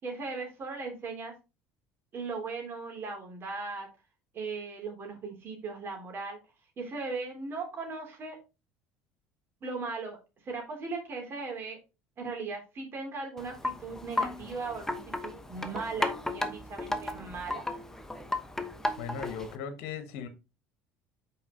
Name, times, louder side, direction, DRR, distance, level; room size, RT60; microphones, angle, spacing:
voice 1, 0.0-1.3 2.1-3.9 4.3-6.4 6.8-8.4 9.6-10.2 10.4-11.8 12.2-17.7, right 4 dB, 45° right, 3.1 m, -38 dB
Wind chime, 13.4-19.6, left 2 dB, 10° left, 1.0 m, -35 dB
voice 2, 19.0-20.3, left 7 dB, 70° left, 1.2 m, -38 dB
5.8 x 4.9 x 3.7 m
hypercardioid pair, 75°, 6 cm